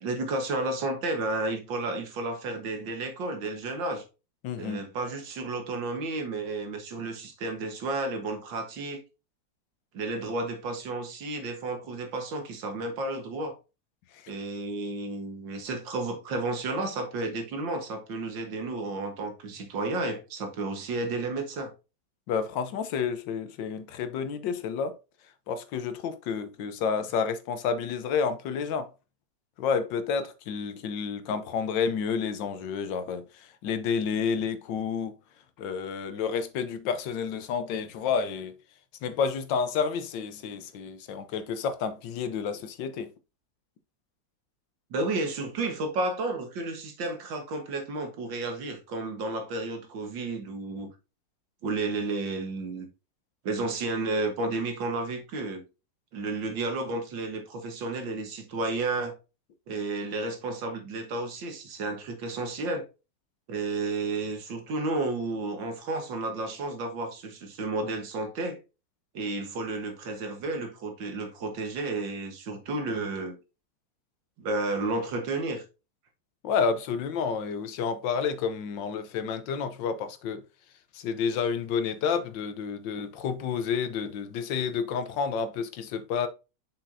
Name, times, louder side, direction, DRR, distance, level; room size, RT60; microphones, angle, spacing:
voice 1, 0.0-4.0 4.6-9.0 9.9-13.6 14.3-21.7 44.9-50.9 51.6-52.9 53.4-55.6 56.1-59.2 59.7-62.8 63.5-68.6 69.1-73.4 74.4-75.6, right 2 dB, 85° right, 2.1 m, -32 dB
voice 2, 4.4-4.8 22.3-24.9 25.5-28.9 29.6-35.1 35.6-38.6 39.0-43.1 76.4-80.4 80.9-86.3, left 6 dB, 80° left, 1.5 m, -30 dB
6.7 x 5.9 x 2.6 m
omnidirectional pair, 2.0 m